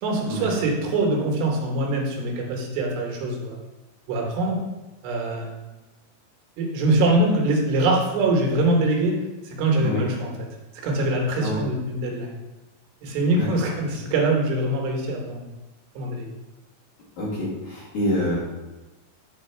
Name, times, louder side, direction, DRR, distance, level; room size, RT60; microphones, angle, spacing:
voice 1, 0.0-3.6 4.1-4.6 5.0-5.6 6.6-9.2 9.5-10.3 10.8-12.3 13.0-15.5 16.0-16.3, right 2 dB, 85° right, 0 dB, 3.4 m, -23 dB
voice 2, 17.2-18.4, equal, 50° left, -7 dB, 3.3 m, -26 dB
9.6 x 4.4 x 4.4 m, 1.1 s
omnidirectional pair, 4.7 m